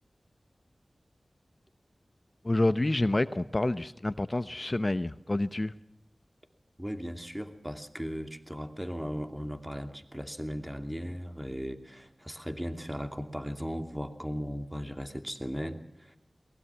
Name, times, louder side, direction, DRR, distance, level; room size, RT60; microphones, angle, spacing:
voice 1, 2.4-5.7, left 1 dB, 35° left, 13 dB, 0.8 m, -28 dB
voice 2, 6.8-16.2, equal, 10° right, 7 dB, 2.6 m, -37 dB
22.5 x 20.5 x 7.2 m, 0.82 s
cardioid pair, 45°, 0 cm